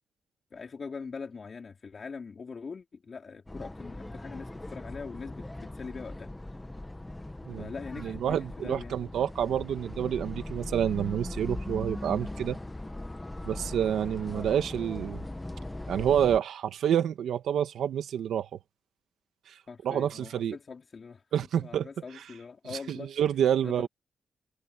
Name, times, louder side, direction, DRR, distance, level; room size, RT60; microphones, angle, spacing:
voice 1, 0.5-6.3 7.6-9.0 19.7-21.2 21.6-23.1 23.6-23.9, left 5 dB, 40° left, 4.3 m, -42 dB
sound 1, 3.5-16.4, left 1 dB, 10° left, 1.3 m, -39 dB
voice 2, 8.0-12.6 13.4-15.2 15.9-18.6 19.5-20.6 21.3-21.9 22.7-23.9, right 9 dB, 80° right, 2.0 m, -28 dB
cardioid pair, 130°, 0 cm